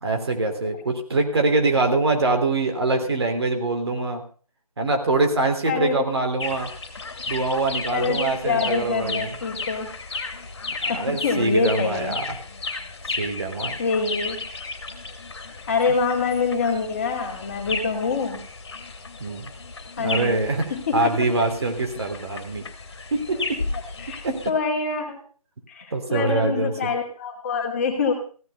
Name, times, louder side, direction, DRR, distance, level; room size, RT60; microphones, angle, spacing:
voice 1, 0.0-4.2 4.8-6.7 7.3-9.3 10.8-12.2 13.2-13.8 19.2-19.5 20.0-20.7 20.9-22.6 23.1-23.6 24.2-24.4 25.9-26.7, right 2 dB, 45° right, 4 dB, 3.4 m, -24 dB
voice 2, 5.6-6.1 7.2-7.3 7.9-9.9 10.9-12.2 13.8-14.4 15.7-18.4 20.0-20.4 20.7-21.1 24.0-25.2 25.7-28.1, left 5 dB, 25° left, 1 dB, 2.7 m, -25 dB
sound 1, 6.4-24.5, left 3 dB, 45° left, 2.7 m, -34 dB
16.0 x 12.0 x 5.5 m, 0.40 s
figure-of-eight pair, 155°, 19 cm